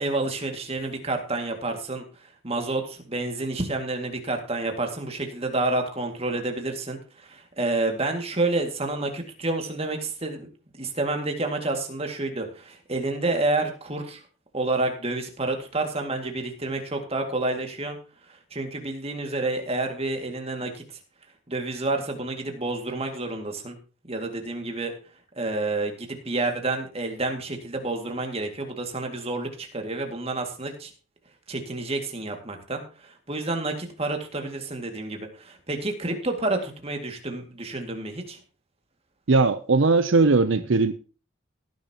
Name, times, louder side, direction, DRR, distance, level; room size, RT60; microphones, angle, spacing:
voice 1, 0.0-10.5 10.8-14.2 14.5-18.0 18.3-20.8 21.5-23.8 24.1-24.9 25.4-30.9 31.5-38.4, right 2 dB, 30° right, 4 dB, 2.2 m, -29 dB
voice 2, 39.3-40.9, right 3 dB, 65° right, 11 dB, 0.6 m, -19 dB
17.0 x 10.5 x 2.9 m, 0.37 s
head